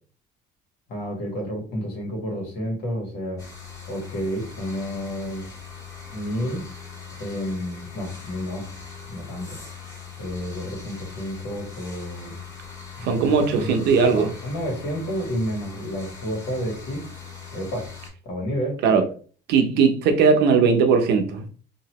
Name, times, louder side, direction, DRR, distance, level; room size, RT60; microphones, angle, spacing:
voice 1, 0.9-3.4 3.9-5.5 6.1-6.6 7.2-8.7 9.1-9.6 10.2-12.4 13.0-13.7 14.0-17.0 17.5-17.9 18.3-18.8, equal, 80° left, 1.5 m, -30 dB
sound 1, 3.4-18.1, left 6 dB, 20° left, 1.6 m, -40 dB
voice 2, 13.0-14.3 18.8-19.0 19.5-21.5, right 5 dB, 80° right, 0.7 m, -19 dB
2.9 x 2.6 x 2.9 m
cardioid pair, 110°, 17 cm